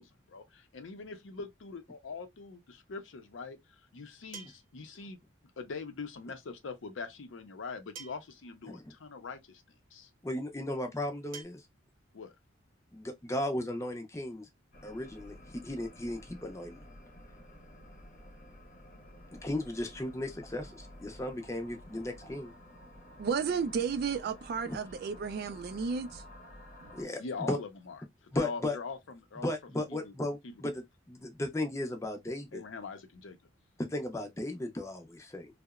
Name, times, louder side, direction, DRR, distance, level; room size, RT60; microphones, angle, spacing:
voice 1, 0.0-3.6 3.9-5.2 5.6-9.6 9.9-10.1 12.1-12.3 23.4-23.8 27.2-28.0 28.3-29.5 29.9-30.1 30.4-30.5 32.5-33.4, left 4 dB, 75° left, 0.5 m, -42 dB
sound 1, 2.6-2.7 4.3-4.8 6.3-6.4 7.9-8.4 9.6-9.7 11.3-11.4, right 6 dB, 85° right, 0.7 m, -47 dB
voice 2, 10.2-11.6 12.9-14.5 14.8-15.4 15.6-16.8 19.4-22.5 24.7-24.8 26.9-27.6 28.3-28.8 29.4-32.6 33.8-35.5, left 1 dB, 15° left, 0.5 m, -35 dB
sound 2, 14.7-27.0, left 1 dB, 50° left, 1.0 m, -52 dB
voice 3, 23.2-26.2, right 6 dB, 50° right, 0.3 m, -32 dB
2.8 x 2.0 x 2.3 m
head